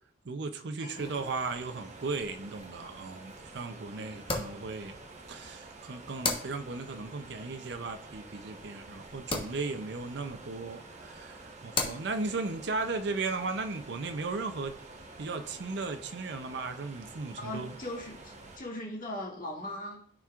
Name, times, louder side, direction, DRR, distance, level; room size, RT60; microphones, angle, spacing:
voice 1, 0.2-5.0 5.3-14.8 15.2-17.7, right 3 dB, 65° right, 7 dB, 0.6 m, -36 dB
voice 2, 0.8-1.3 3.9-4.4 17.4-20.0, left 1 dB, 50° left, -4 dB, 1.9 m, -40 dB
sound 1, 0.9-18.6, right 2 dB, 40° right, 1.0 m, -49 dB
sound 2, 2.1-15.0, left 3 dB, 30° left, 1.0 m, -41 dB
12.5 x 4.4 x 2.4 m, 0.66 s
head